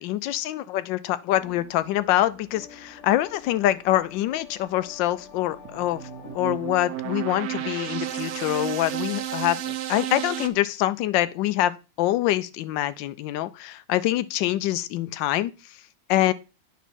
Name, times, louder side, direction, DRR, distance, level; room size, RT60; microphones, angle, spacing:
voice 1, 0.0-15.8 16.1-16.3, left 14 dB, 85° left, 1.3 m, -25 dB
sound 1, 1.3-6.4, left 5 dB, 55° left, 1.5 m, -48 dB
sound 2, 5.7-10.5, right 12 dB, 85° right, 0.6 m, -32 dB
9.3 x 4.0 x 4.2 m
omnidirectional pair, 1.9 m